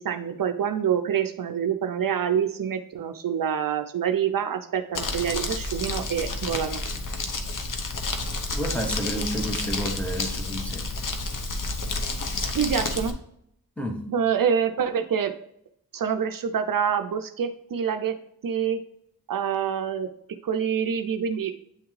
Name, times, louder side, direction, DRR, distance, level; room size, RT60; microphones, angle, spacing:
voice 1, 0.0-6.8 12.5-13.2 14.1-15.3 15.9-18.2 18.4-18.8 19.3-20.1 20.4-21.5, right 8 dB, 60° right, 0.5 m, -26 dB
Crumpling crinkling, 4.9-13.1, left 2 dB, 55° left, 0.9 m, -30 dB
voice 2, 8.5-10.9 13.8-14.0, equal, 5° left, 1.0 m, -30 dB
8.8 x 3.5 x 3.1 m
wide cardioid pair, 85°, 37 cm